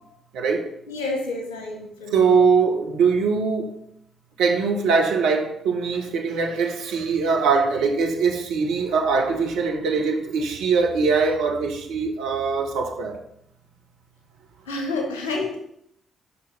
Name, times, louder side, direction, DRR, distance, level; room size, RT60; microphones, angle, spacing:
voice 1, 0.3-0.7 2.1-3.7 4.4-13.2, right 5 dB, 70° right, 1.2 m, -22 dB
voice 2, 0.9-2.4 14.7-15.6, left 3 dB, 80° left, 1.6 m, -29 dB
7.1 x 5.6 x 5.6 m
figure-of-eight pair, 40°, 0 cm